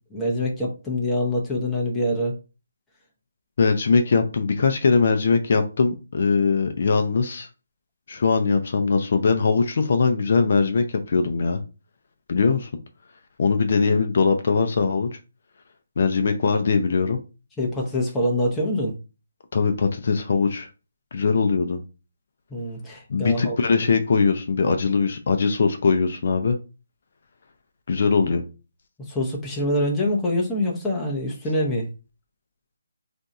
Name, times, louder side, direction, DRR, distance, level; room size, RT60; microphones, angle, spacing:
voice 1, 0.1-2.3 17.6-18.9 22.5-23.6 29.0-31.9, left 1 dB, 5° left, -3 dB, 0.7 m, -25 dB
voice 2, 3.6-7.5 8.1-11.6 12.3-12.7 13.4-15.1 16.0-17.2 19.5-20.7 21.1-21.8 23.1-26.6 27.9-28.4, left 4 dB, 50° left, 7 dB, 0.4 m, -21 dB
2.6 x 2.3 x 4.0 m, 0.31 s
hypercardioid pair, 165°, 0 cm